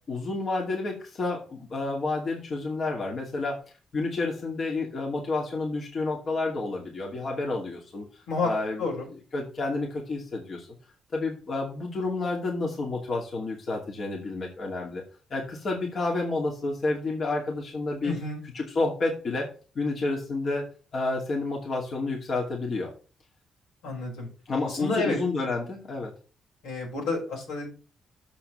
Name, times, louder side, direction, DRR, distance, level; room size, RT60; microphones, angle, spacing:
voice 1, 0.1-3.6 3.9-8.1 8.4-8.9 9.3-10.7 11.1-15.0 15.3-18.1 18.5-19.5 19.7-20.7 20.9-22.9 24.5-26.1, left 3 dB, 50° left, -1 dB, 2.5 m, -30 dB
voice 2, 18.0-18.4 23.8-24.3 24.8-25.2 26.6-27.7, left 3 dB, 90° left, -1 dB, 4.8 m, -29 dB
7.1 x 5.6 x 6.1 m, 0.36 s
cardioid pair, 90°, 0 cm